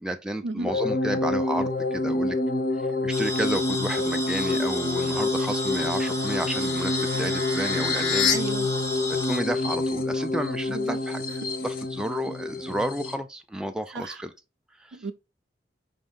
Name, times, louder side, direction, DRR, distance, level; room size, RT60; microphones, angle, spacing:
voice 1, 0.0-2.4 3.0-8.3 9.1-11.2 11.6-14.3 14.8-15.0, right 1 dB, 5° right, 0.3 m, -31 dB
sound 1, 0.7-13.2, left 2 dB, 50° left, 0.6 m, -27 dB
sound 2, 3.1-9.4, left 1 dB, 15° left, 1.0 m, -33 dB
sound 3, 6.1-8.4, left 6 dB, 80° left, 1.2 m, -29 dB
voice 2, 8.3-8.7 10.7-11.0 13.9-14.2 14.9-15.1, right 2 dB, 80° right, 0.5 m, -33 dB
5.3 x 2.6 x 3.6 m
head